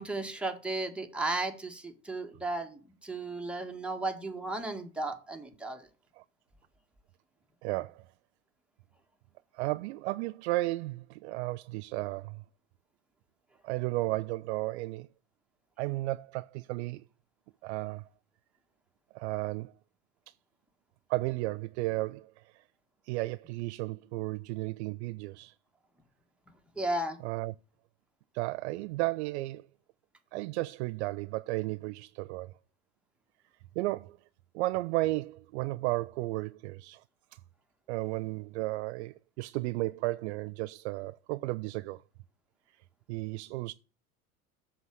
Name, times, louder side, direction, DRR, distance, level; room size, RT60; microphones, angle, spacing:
voice 1, 0.0-5.9 26.8-27.2, right 2 dB, ahead, 1.7 m, -34 dB
voice 2, 7.6-8.0 9.5-12.4 13.6-15.1 15.8-17.0 17.6-18.1 19.1-19.7 21.1-22.6 23.0-25.5 27.2-27.5 28.3-29.7 30.3-32.5 33.8-34.2 34.5-37.0 37.3-37.4 37.9-42.0 43.1-43.7, right 20 dB, 50° right, 0.5 m, -34 dB
8.0 x 6.7 x 6.2 m
hypercardioid pair, 85°, 43 cm